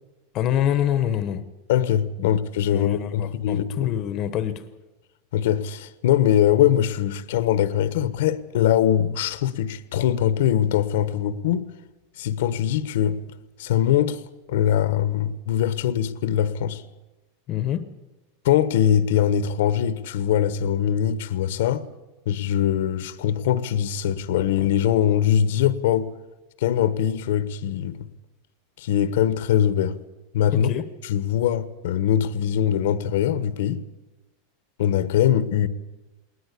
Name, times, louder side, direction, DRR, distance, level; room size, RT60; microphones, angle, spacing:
voice 1, 0.3-1.4 2.2-2.3 2.7-4.6 17.5-17.9 30.5-30.9, left 10 dB, 30° left, 1.0 m, -26 dB
voice 2, 1.7-3.9 5.3-11.7 12.2-13.2 13.6-14.2 14.5-16.8 18.4-21.9 22.3-26.1 26.6-28.1 28.8-30.0 30.3-30.7 31.1-33.8 34.8-35.7, left 10 dB, 65° left, 1.2 m, -22 dB
20.5 x 19.5 x 8.4 m
supercardioid pair, 175°, 0 cm